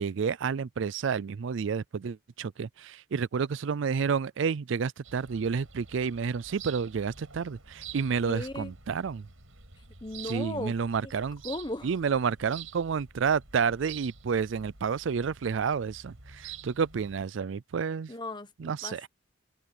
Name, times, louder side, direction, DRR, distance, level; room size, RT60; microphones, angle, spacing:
voice 1, 0.0-9.3 10.2-11.4 11.8-18.1 18.6-19.1, right 6 dB, 65° right, 0.4 m, -30 dB
sound 1, 5.0-17.2, right 7 dB, 85° right, 5.9 m, -48 dB
voice 2, 8.2-8.7 10.0-10.7 11.4-11.9 18.1-19.1, left 1 dB, 20° left, 1.2 m, -36 dB
head